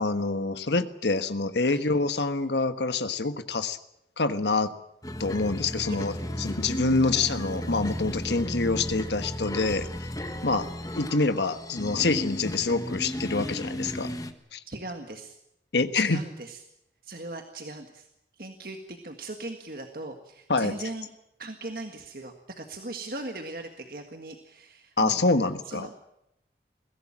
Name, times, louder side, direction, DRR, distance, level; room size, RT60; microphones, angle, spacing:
voice 1, 0.0-3.8 4.2-4.7 5.2-10.1 10.4-10.7 10.9-14.1 14.5-14.6 15.7-16.2 20.5-20.7 25.0-25.9, left 3 dB, 80° left, 10 dB, 1.4 m, -26 dB
sound 1, 5.0-14.3, equal, 20° left, 1.4 m, -34 dB
voice 2, 14.7-15.4 15.9-16.6 17.0-18.1 18.4-21.1 21.4-25.2 25.7-25.9, right 2 dB, 55° right, 5 dB, 1.7 m, -39 dB
22.0 x 16.5 x 8.8 m, 0.83 s
head